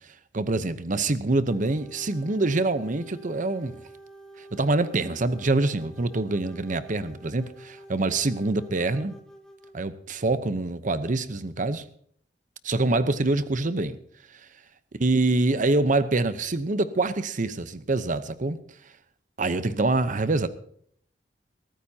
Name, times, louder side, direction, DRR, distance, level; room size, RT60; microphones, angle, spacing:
voice 1, 0.3-3.8 4.4-9.2 9.7-11.8 12.6-14.0 15.0-18.6 19.4-20.5, right 2 dB, 45° right, 0.8 m, -25 dB
sound 1, 1.5-9.9, right 2 dB, 5° left, 1.8 m, -48 dB
22.5 x 14.5 x 2.8 m
head